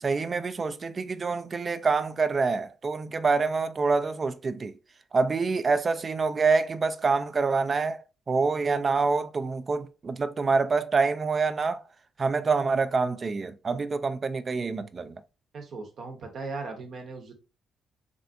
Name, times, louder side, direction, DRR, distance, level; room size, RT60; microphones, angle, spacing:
voice 1, 0.0-4.7 5.1-11.8 12.2-15.2, right 4 dB, 45° right, 0.3 m, -26 dB
voice 2, 15.5-17.3, right 3 dB, 65° right, 0.8 m, -38 dB
3.4 x 2.5 x 2.6 m
supercardioid pair, 55°, 0 cm